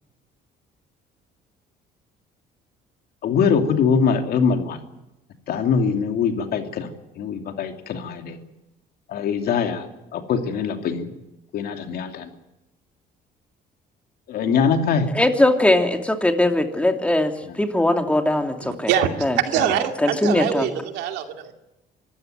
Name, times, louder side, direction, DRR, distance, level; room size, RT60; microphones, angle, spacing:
voice 1, 3.2-4.8 5.5-8.4 9.1-9.8 10.1-11.1 11.5-12.3 14.3-15.1, left 6 dB, 65° left, 5 dB, 2.8 m, -22 dB
voice 2, 15.1-18.9 19.2-20.7, left 1 dB, 5° left, 5 dB, 2.8 m, -21 dB
voice 3, 18.6-21.5, right 9 dB, 85° right, 5 dB, 2.6 m, -24 dB
25.0 x 15.0 x 9.2 m, 0.94 s
cardioid pair, 110°, 17 cm